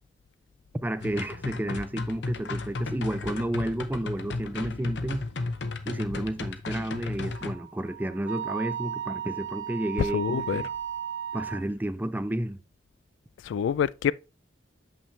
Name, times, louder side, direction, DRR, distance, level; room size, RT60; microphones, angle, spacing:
voice 1, 0.7-5.2 5.9-10.7 11.3-12.6, right 1 dB, 10° right, 0.4 m, -31 dB
sound 1, 1.0-7.5, left 3 dB, 65° left, 0.7 m, -34 dB
Wind instrument woodwind instrument, 7.3-11.6, right 9 dB, 90° right, 1.0 m, -35 dB
voice 2, 10.1-10.6 13.5-14.1, left 8 dB, 90° left, 0.3 m, -26 dB
7.1 x 5.6 x 3.2 m
head